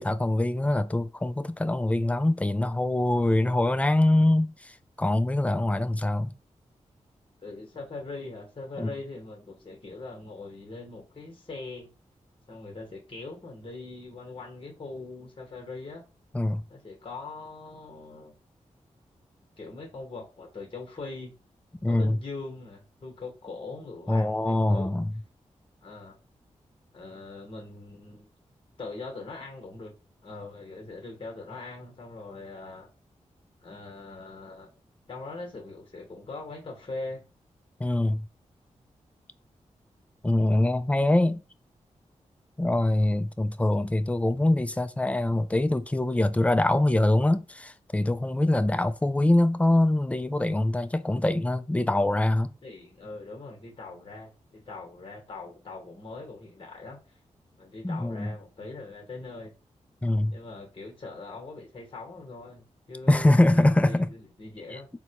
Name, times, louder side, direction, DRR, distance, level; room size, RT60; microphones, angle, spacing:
voice 1, 0.0-6.3 8.8-8.9 16.3-16.6 21.8-22.2 24.1-25.1 37.8-38.3 40.2-41.4 42.6-52.5 57.8-58.3 60.0-60.4 63.1-64.1 64.7-64.8, left 1 dB, 10° left, 0.3 m, -24 dB
voice 2, 7.4-11.9 12.5-16.0 16.7-18.4 19.6-21.3 21.9-24.9 25.8-26.2 26.9-28.3 28.8-29.9 30.2-32.9 33.6-34.7 35.1-37.2 48.7-48.8 52.6-57.2 57.6-59.5 60.3-64.9, left 3 dB, 40° left, 1.1 m, -41 dB
4.0 x 2.2 x 2.8 m
cardioid pair, 50°, 13 cm